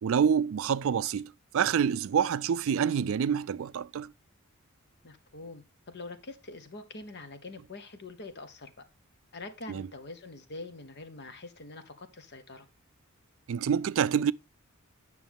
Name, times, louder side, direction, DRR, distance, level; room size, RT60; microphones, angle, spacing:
voice 1, 0.0-4.1 9.7-9.8 13.5-14.3, right 7 dB, 65° right, 0.3 m, -27 dB
voice 2, 5.0-8.8 9.3-12.7, left 3 dB, 50° left, 1.1 m, -44 dB
9.3 x 6.3 x 3.5 m
head